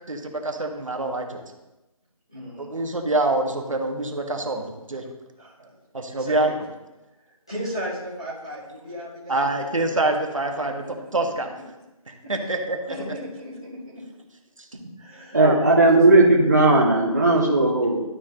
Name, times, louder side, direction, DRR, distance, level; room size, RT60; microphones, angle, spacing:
voice 1, 0.1-1.4 2.6-5.0 5.9-6.5 9.3-11.5 12.1-13.0 15.3-15.6, right 2 dB, 60° right, 3 dB, 1.6 m, -26 dB
voice 2, 2.3-2.8 5.4-5.7 6.2-6.5 7.5-9.7 10.6-10.9 12.9-13.8 15.0-15.4 15.8-15.9, equal, 10° left, -12 dB, 0.9 m, -35 dB
voice 3, 15.3-18.0, right 2 dB, 30° right, -3 dB, 0.9 m, -16 dB
12.5 x 4.7 x 3.8 m, 0.99 s
figure-of-eight pair, 180°, 19 cm